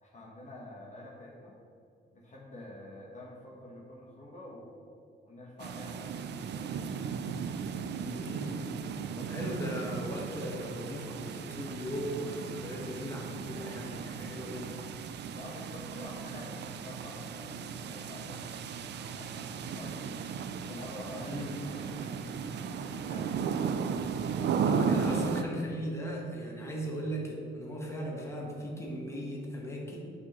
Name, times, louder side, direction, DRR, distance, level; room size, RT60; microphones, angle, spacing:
voice 1, 0.0-1.6 2.1-4.8 5.2-7.3 15.3-20.3 20.7-21.5 21.8-23.8, left 1 dB, 35° left, -4 dB, 1.1 m, -48 dB
sound 1, 5.6-25.4, right 6 dB, 60° right, 0.4 m, -35 dB
voice 2, 8.0-8.6 9.2-14.8 21.2-21.5 24.4-30.0, equal, 15° left, -2 dB, 1.3 m, -38 dB
8.1 x 4.9 x 3.1 m, 2.4 s
cardioid pair, 90°, 20 cm